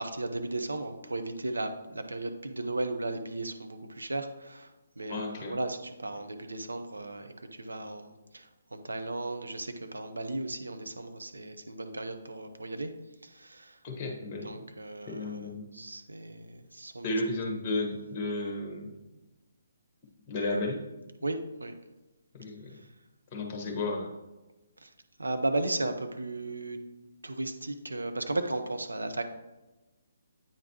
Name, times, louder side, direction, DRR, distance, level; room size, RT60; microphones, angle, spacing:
voice 1, 0.0-4.7 5.0-12.9 13.2-13.8 14.4-17.2 21.2-21.7 24.8-24.9 25.2-26.8 27.2-29.2, right 2 dB, 75° right, 7 dB, 0.6 m, -35 dB
voice 2, 5.1-5.6 13.8-14.6 15.1-15.7 17.0-18.9 20.3-20.8 22.3-22.7 23.3-24.1, left 2 dB, 25° left, 1 dB, 1.4 m, -33 dB
8.5 x 3.9 x 2.9 m, 1.1 s
figure-of-eight pair, 135°, 0 cm